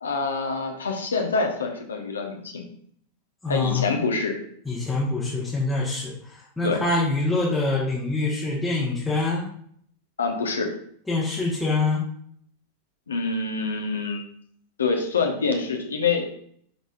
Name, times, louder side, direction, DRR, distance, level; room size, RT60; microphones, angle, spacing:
voice 1, 0.0-2.6 3.5-4.3 6.6-6.8 10.2-10.7 13.1-14.2 14.8-16.3, left 4 dB, 70° left, 3 dB, 1.2 m, -26 dB
voice 2, 3.4-3.9 4.6-9.5 11.1-12.0, left 3 dB, 5° left, -7 dB, 1.5 m, -25 dB
11.5 x 4.0 x 2.6 m, 0.63 s
figure-of-eight pair, 90°, 0 cm